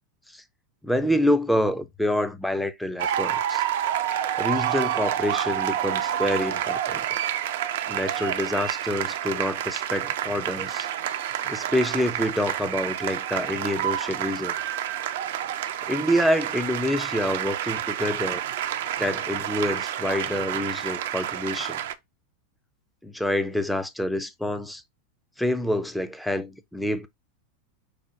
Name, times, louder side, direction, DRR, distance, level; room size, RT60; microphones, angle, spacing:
voice 1, 0.8-3.6 4.4-7.2 7.9-10.9 11.4-14.5 15.9-18.4 19.0-21.8 23.0-24.8 25.4-27.1, left 1 dB, 5° left, 0.5 m, -27 dB
sound 1, 3.0-21.9, right 11 dB, 60° right, 0.4 m, -29 dB
4.8 x 2.2 x 4.5 m
figure-of-eight pair, 85°, 0 cm